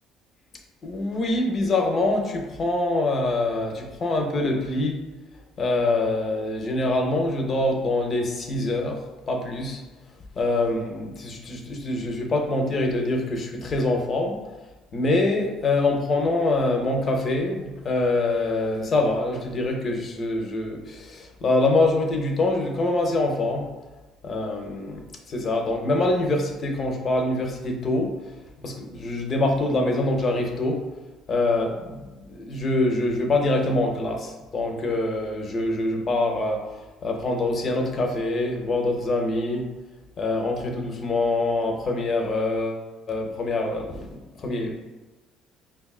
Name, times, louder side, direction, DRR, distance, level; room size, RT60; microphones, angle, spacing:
voice 1, 0.8-5.0 5.6-9.8 10.4-14.4 14.9-23.7 24.2-25.0 25.3-28.1 28.6-30.8 31.3-36.7 37.0-39.7 40.2-44.8, left 2 dB, 40° left, 3 dB, 0.7 m, -25 dB
5.2 x 2.3 x 2.4 m, 1.1 s
supercardioid pair, 90°, 0 cm